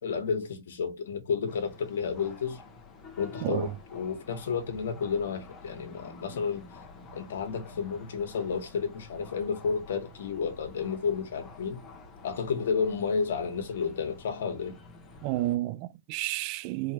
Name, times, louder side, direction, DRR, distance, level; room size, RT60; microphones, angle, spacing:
voice 1, 0.0-2.6 3.2-6.6 7.1-11.8 12.2-14.8, left 6 dB, 75° left, 1.4 m, -31 dB
sound 1, 1.5-15.6, left 3 dB, 25° left, 1.2 m, -49 dB
voice 2, 15.2-16.9, right 17 dB, 40° right, 0.3 m, -31 dB
4.5 x 3.0 x 2.9 m
hypercardioid pair, 140°, 0 cm